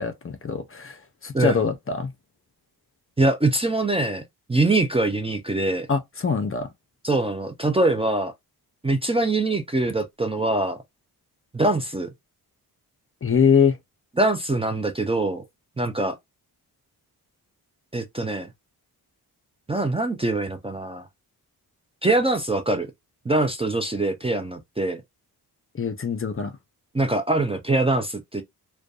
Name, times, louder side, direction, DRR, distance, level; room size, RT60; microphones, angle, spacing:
voice 1, 0.0-2.1 5.9-6.7 13.2-13.8 25.8-26.5, left 6 dB, 35° left, 0.5 m, -23 dB
voice 2, 3.2-4.2 4.5-5.9 7.0-8.3 8.8-10.8 11.5-12.1 14.2-15.4 15.8-16.2 17.9-18.5 19.7-21.1 22.0-22.9 23.3-25.0 26.9-28.4, right 2 dB, 15° right, 0.4 m, -23 dB
2.5 x 2.2 x 2.3 m
cardioid pair, 75°, 39 cm